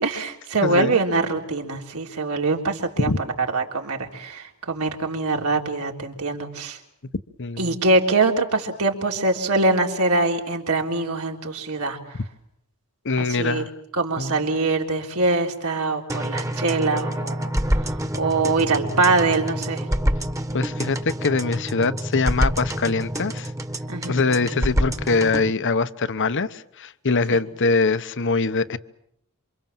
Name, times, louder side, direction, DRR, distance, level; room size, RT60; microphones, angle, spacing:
voice 1, 0.0-3.1 3.5-6.8 7.6-12.0 13.2-13.6 14.0-17.5 17.8-19.9 23.9-24.2 27.3-27.4, right 3 dB, 75° right, 2 dB, 3.8 m, -23 dB
voice 2, 0.6-0.9 3.0-3.2 7.4-7.8 13.0-13.7 14.2-14.5 20.5-23.5 24.1-28.8, left 3 dB, 55° left, 14 dB, 1.0 m, -23 dB
sound 1, 16.1-25.5, equal, 15° right, 1.4 m, -27 dB
28.0 x 25.5 x 7.5 m, 0.73 s
head